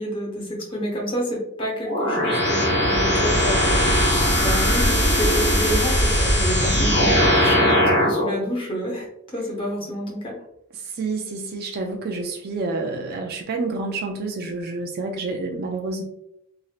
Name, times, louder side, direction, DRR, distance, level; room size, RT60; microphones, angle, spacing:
voice 1, 0.0-4.1 4.4-9.1 9.3-10.4, equal, 25° left, -2 dB, 0.8 m, -28 dB
sound 1, 1.9-8.3, equal, 50° left, 1.2 m, -19 dB
voice 2, 11.0-16.0, right 3 dB, 45° right, 2 dB, 0.3 m, -28 dB
3.0 x 2.7 x 2.4 m, 0.78 s
head